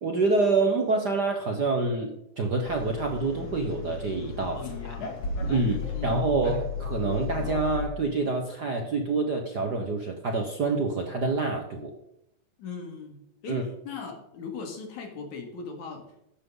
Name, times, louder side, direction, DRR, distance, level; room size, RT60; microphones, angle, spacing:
voice 1, 0.0-4.9 5.5-11.9 13.5-13.6, right 3 dB, 55° right, 3 dB, 1.2 m, -27 dB
sound 1, 2.7-7.9, left 5 dB, 60° left, 3.5 m, -34 dB
voice 2, 4.5-6.2 12.6-16.1, left 5 dB, 75° left, 3 dB, 3.6 m, -40 dB
14.0 x 11.0 x 3.9 m, 0.80 s
omnidirectional pair, 3.4 m